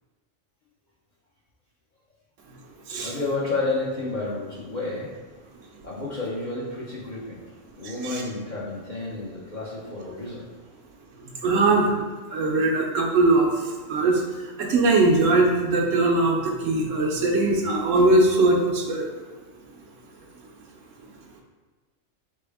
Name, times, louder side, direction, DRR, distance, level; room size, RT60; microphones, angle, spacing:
voice 1, 3.0-5.1 5.8-7.4 7.7-10.4, left 2 dB, 40° left, -6 dB, 0.7 m, -30 dB
voice 2, 7.8-8.2 11.4-12.0 12.3-14.2 14.6-19.1, right 2 dB, 75° right, 1 dB, 1.0 m, -21 dB
4.2 x 3.3 x 3.4 m, 1.3 s
omnidirectional pair, 1.4 m